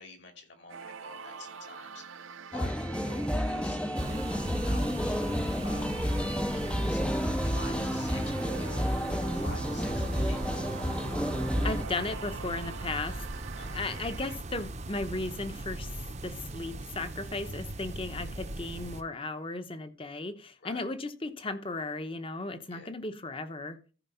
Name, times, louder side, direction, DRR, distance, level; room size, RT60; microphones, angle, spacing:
voice 1, 0.0-2.0 2.5-5.2 5.6-10.4 13.5-13.9 20.6-20.8 22.7-22.9, left 3 dB, 55° left, 2.6 m, -49 dB
sound 1, 0.7-14.4, right 6 dB, 75° right, 0.6 m, -45 dB
sound 2, 2.5-11.8, equal, 5° left, 0.5 m, -30 dB
sound 3, 4.0-19.0, right 2 dB, 35° right, 0.7 m, -39 dB
voice 2, 11.6-13.2 13.7-15.9 16.2-23.8, left 2 dB, 25° left, 0.9 m, -36 dB
14.0 x 5.0 x 5.6 m
head